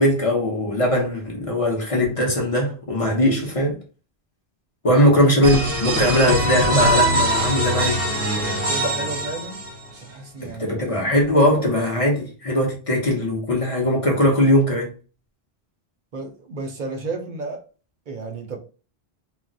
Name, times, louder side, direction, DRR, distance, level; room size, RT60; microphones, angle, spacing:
voice 1, 0.0-3.8 4.8-8.1 10.4-14.9, equal, 35° left, 0.9 m, -20 dB
sound 1, 5.4-10.0, right 1 dB, 15° right, 0.8 m, -22 dB
voice 2, 8.4-9.6 9.9-11.7 16.1-17.6 18.1-18.6, right 3 dB, 55° right, 0.7 m, -33 dB
2.4 x 2.1 x 3.8 m
omnidirectional pair, 1.1 m